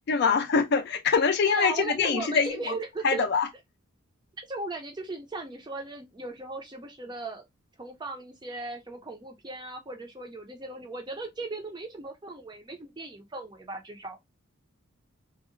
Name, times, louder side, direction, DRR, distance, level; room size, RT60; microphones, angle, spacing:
voice 1, 0.1-2.7 3.0-3.5, left 5 dB, 50° left, 0.4 m, -24 dB
voice 2, 1.5-3.2 4.5-7.4 7.8-14.2, right 2 dB, 20° right, 0.5 m, -37 dB
2.7 x 2.0 x 2.5 m
head